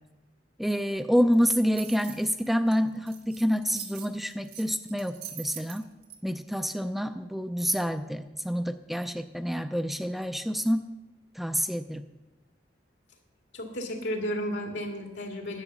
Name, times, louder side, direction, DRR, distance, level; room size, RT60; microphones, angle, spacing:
voice 1, 0.6-5.8 6.2-10.8 11.4-12.0, equal, ahead, 8 dB, 0.4 m, -27 dB
sound 1, 1.3-6.2, right 10 dB, 65° right, 1.9 m, -43 dB
voice 2, 13.5-15.6, equal, 85° left, 2 dB, 2.3 m, -33 dB
11.0 x 7.8 x 7.2 m, 1.1 s
head